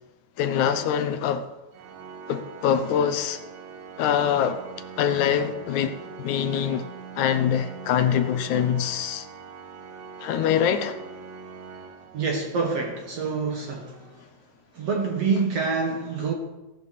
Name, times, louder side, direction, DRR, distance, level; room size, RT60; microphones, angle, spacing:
voice 1, 0.4-1.5 2.3-3.4 4.0-4.7 5.0-6.9 7.2-9.3 10.2-11.0, left 8 dB, 70° left, 1.9 m, -24 dB
Organ, 1.7-12.7, right 6 dB, 90° right, 2.9 m, -42 dB
voice 2, 12.1-14.2 14.7-16.3, right 4 dB, 55° right, 2.1 m, -27 dB
17.0 x 8.4 x 6.7 m
omnidirectional pair, 4.0 m